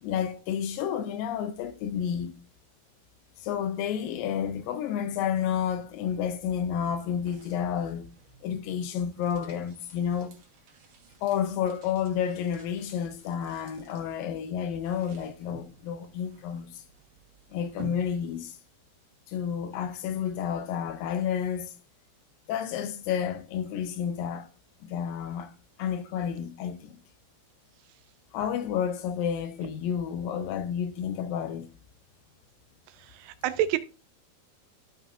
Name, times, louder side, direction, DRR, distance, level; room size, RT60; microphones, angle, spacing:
voice 1, 0.0-2.4 3.4-8.1 8.4-10.3 11.2-16.8 17.5-18.6 19.3-21.7 22.5-24.5 24.8-27.0 28.3-31.7, left 8 dB, 80° left, 2.1 m, -30 dB
sound 1, 6.9-18.7, right 7 dB, 55° right, 2.2 m, -53 dB
voice 2, 32.9-33.8, right 11 dB, 90° right, 2.7 m, -29 dB
13.0 x 5.5 x 2.5 m
omnidirectional pair, 4.6 m